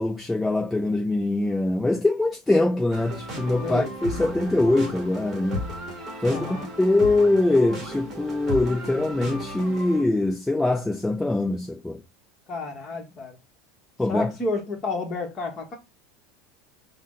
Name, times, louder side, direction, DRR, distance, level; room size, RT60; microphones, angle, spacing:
voice 1, 0.0-5.6 6.2-12.0 14.0-14.3, left 2 dB, 5° left, 0.4 m, -23 dB
sound 1, 2.9-10.0, equal, 15° right, 1.3 m, -35 dB
voice 2, 3.6-3.9 6.3-6.7 12.5-13.4 14.1-15.8, left 3 dB, 25° left, 1.1 m, -30 dB
5.6 x 2.1 x 3.7 m
supercardioid pair, 170°, 0 cm